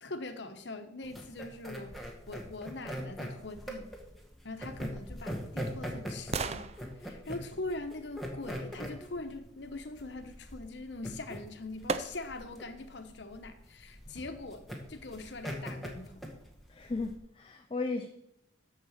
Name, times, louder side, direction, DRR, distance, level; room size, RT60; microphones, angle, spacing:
voice 1, 0.0-3.9 4.4-16.2, left 2 dB, 65° left, 1.0 m, -42 dB
sound 1, 1.0-17.2, equal, ahead, 1.2 m, -41 dB
sound 2, 5.0-8.9 11.0-11.1 11.9-12.6 13.1-13.2, right 4 dB, 35° right, 0.4 m, -40 dB
voice 2, 16.7-18.1, left 3 dB, 30° left, 0.4 m, -35 dB
6.8 x 6.0 x 7.3 m
head